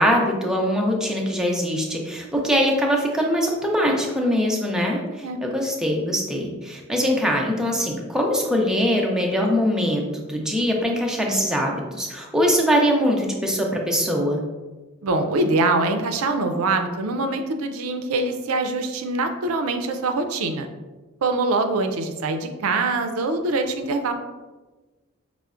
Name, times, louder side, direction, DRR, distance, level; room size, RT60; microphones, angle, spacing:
voice 1, 0.0-14.4, equal, 5° right, -1 dB, 0.4 m, -22 dB
voice 2, 15.0-20.7 21.2-24.1, right 3 dB, 90° right, 6 dB, 0.4 m, -24 dB
5.5 x 2.0 x 2.4 m, 1.2 s
head